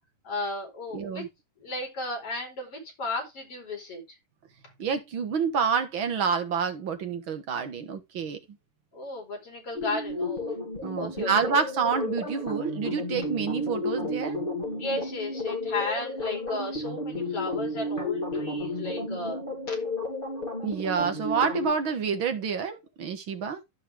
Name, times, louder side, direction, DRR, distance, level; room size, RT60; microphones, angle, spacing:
voice 1, 0.2-1.2 1.6-4.0 8.9-10.6 11.0-11.3 14.7-19.4 19.7-19.8, left 2 dB, 45° left, 5.8 m, -34 dB
voice 2, 0.9-1.3 4.8-8.4 10.8-14.4 20.6-23.6, right 6 dB, 50° right, 1.7 m, -28 dB
sound 1, 9.7-21.7, left 2 dB, 15° left, 3.3 m, -32 dB
14.0 x 5.6 x 3.5 m
omnidirectional pair, 3.8 m